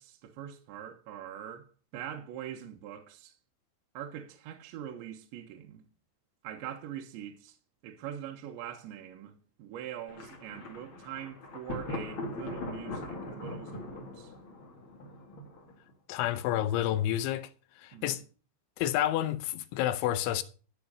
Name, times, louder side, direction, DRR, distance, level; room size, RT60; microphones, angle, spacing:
voice 1, 0.0-3.3 3.9-5.8 6.4-7.6 7.8-14.3 17.9-18.2, right 10 dB, 70° right, 3.3 m, -43 dB
Thunder, 10.1-15.9, left 2 dB, 45° left, 1.6 m, -41 dB
voice 2, 16.1-17.5 17.8-18.2 18.8-20.4, left 12 dB, 80° left, 3.0 m, -29 dB
13.5 x 6.2 x 6.6 m
omnidirectional pair, 5.8 m